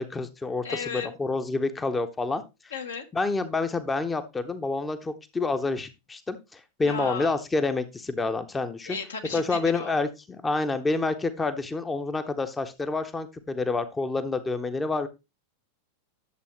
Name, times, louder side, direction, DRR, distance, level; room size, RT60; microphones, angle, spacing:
voice 1, 0.0-2.4 3.1-9.0 9.3-10.1 10.4-15.1, left 3 dB, 15° left, 10 dB, 0.8 m, -28 dB
voice 2, 0.6-1.1 2.7-3.1 6.8-7.4 8.9-9.9, left 5 dB, 70° left, 4 dB, 1.5 m, -35 dB
11.0 x 7.0 x 3.1 m, 0.25 s
figure-of-eight pair, 90°, 0 cm